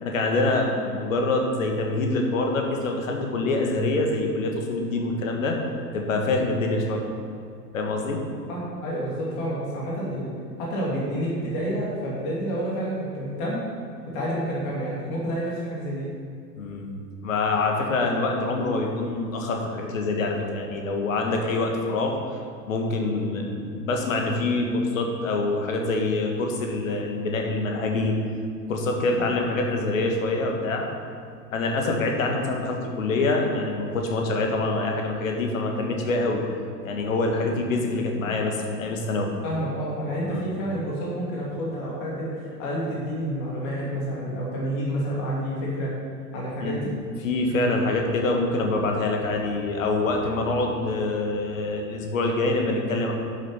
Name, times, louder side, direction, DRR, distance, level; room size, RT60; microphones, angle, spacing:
voice 1, 0.0-5.6 5.9-7.0 7.7-8.2 16.6-16.9 17.2-22.1 22.7-28.2 28.7-30.9 31.5-36.4 36.8-39.3 40.2-40.5 46.6-46.8 47.2-53.1, left 2 dB, 50° left, 2 dB, 1.8 m, -25 dB
voice 2, 8.5-10.3 10.6-13.6 14.1-16.1 39.4-45.9 46.3-46.9, equal, 35° left, -5 dB, 2.8 m, -29 dB
11.0 x 6.9 x 5.8 m, 2.5 s
figure-of-eight pair, 105°, 50 cm